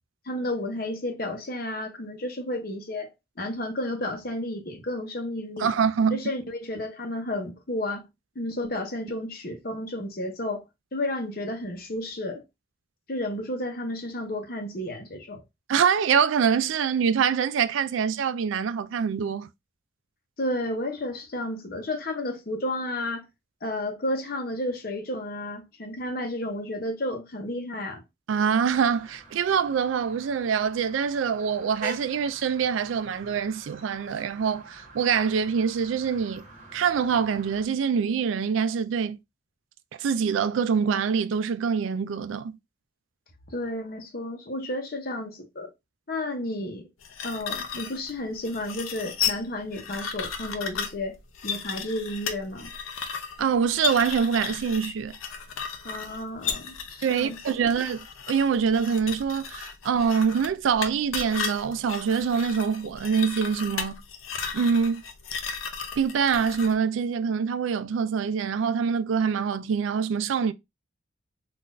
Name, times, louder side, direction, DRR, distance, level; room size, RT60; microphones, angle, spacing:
voice 1, 0.3-3.1 3.4-5.7 6.1-8.1 8.4-10.6 10.9-12.4 13.1-15.4 20.4-23.2 23.6-28.0 43.5-45.7 46.1-46.9 47.2-51.2 51.4-52.7 55.8-57.4, left 1 dB, 45° left, 0.8 m, -32 dB
voice 2, 5.6-6.2 15.7-19.5 28.3-36.4 36.7-39.2 40.0-42.6 53.4-55.1 57.0-64.0 64.5-65.0 66.0-70.5, right 6 dB, 75° right, 0.3 m, -25 dB
sound 1, 28.6-37.7, right 2 dB, 35° right, 1.0 m, -46 dB
sound 2, 47.0-66.7, left 6 dB, 90° left, 0.6 m, -35 dB
3.8 x 2.5 x 2.5 m
head